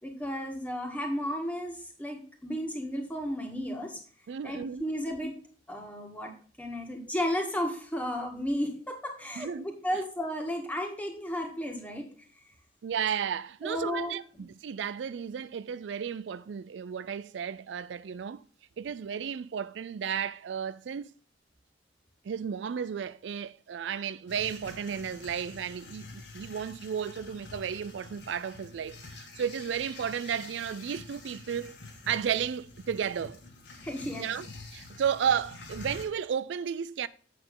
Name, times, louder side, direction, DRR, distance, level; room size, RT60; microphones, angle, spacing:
voice 1, 0.0-4.0 4.4-5.3 5.7-6.3 6.6-12.1 13.6-14.4 33.8-34.3, equal, 10° left, 1.8 m, -33 dB
voice 2, 4.3-4.9 9.4-9.6 12.8-18.4 18.8-21.1 22.2-31.8 32.1-33.4 34.2-34.5 34.7-37.1, right 7 dB, 80° right, 0.4 m, -33 dB
sound 1, 24.3-36.1, left 3 dB, 85° left, 2.1 m, -47 dB
7.9 x 6.8 x 3.8 m
head